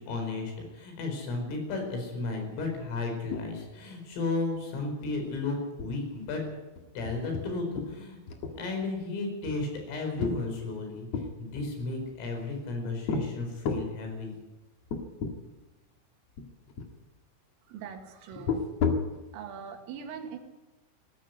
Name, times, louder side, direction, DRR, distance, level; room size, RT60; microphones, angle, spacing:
voice 1, 0.0-6.4 7.0-8.2 8.5-14.3, left 3 dB, 80° left, 4 dB, 7.4 m, -34 dB
sound 1, 3.3-3.8 4.1-4.2 4.6-4.8 5.2-5.4 5.8-8.0 8.3-9.0 9.5-11.3 12.0-12.6 13.1-13.3 13.6-13.9 14.5-14.6 14.9-15.3 15.7-15.8 16.4-16.9 18.3-19.2, left 5 dB, 55° left, 1.8 m, -32 dB
voice 2, 17.7-19.0 19.3-20.4, right 7 dB, 80° right, 5 dB, 4.4 m, -42 dB
19.5 x 14.0 x 9.5 m, 1.1 s
omnidirectional pair, 5.9 m